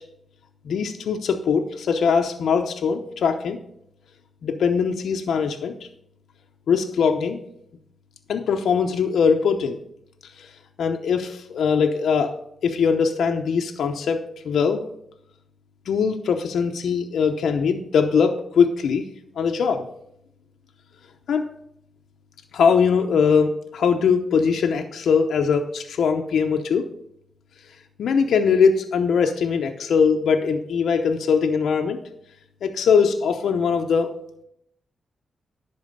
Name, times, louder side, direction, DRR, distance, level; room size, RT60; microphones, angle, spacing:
voice 1, 0.6-3.6 4.4-5.7 6.7-7.4 8.3-9.8 10.4-10.5 10.8-12.3 12.6-14.8 15.9-19.1 19.4-19.8 21.3-21.5 22.5-26.8 28.0-32.0 32.6-34.1, left 6 dB, 85° left, 4 dB, 0.8 m, -21 dB
11.0 x 4.4 x 6.6 m, 0.73 s
cardioid pair, 95°, 0 cm